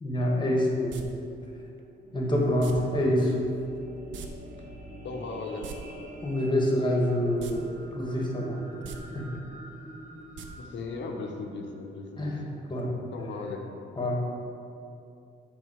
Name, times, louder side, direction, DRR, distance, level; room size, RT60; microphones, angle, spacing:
voice 1, 0.0-1.0 2.1-3.4 6.2-7.6 7.9-8.6 9.1-9.3 12.2-12.4 12.7-12.9 14.0-14.2, left 1 dB, 25° left, -1 dB, 1.4 m, -26 dB
sound 1, 0.9-1.0 2.6-2.7 4.1-4.3 4.5-4.6 5.5-5.8 7.4-7.6 7.9-8.0 8.7-9.0 10.4-10.5 10.8-10.9, right 8 dB, 75° right, 0.6 m, -41 dB
sound 2, 1.8-12.3 12.9-13.0, right 1 dB, 40° right, 1.2 m, -45 dB
voice 2, 5.0-5.7 10.6-12.6 13.1-13.7, left 3 dB, 65° left, 2 dB, 0.9 m, -37 dB
7.0 x 3.9 x 5.0 m, 2.6 s
cardioid pair, 90°, 20 cm